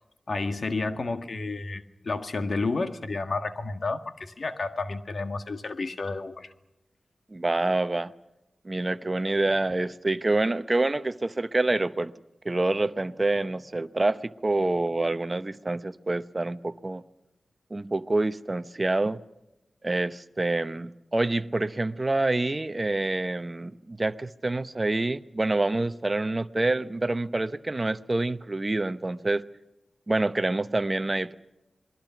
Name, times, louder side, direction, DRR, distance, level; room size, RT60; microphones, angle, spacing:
voice 1, 0.3-6.5, left 3 dB, 65° left, 1.7 m, -31 dB
voice 2, 7.3-8.1 8.6-12.1 12.4-17.0 17.7-19.2 19.8-29.5 30.1-31.3, right 2 dB, 35° right, 0.9 m, -27 dB
28.0 x 21.5 x 6.0 m
cardioid pair, 45°, 0 cm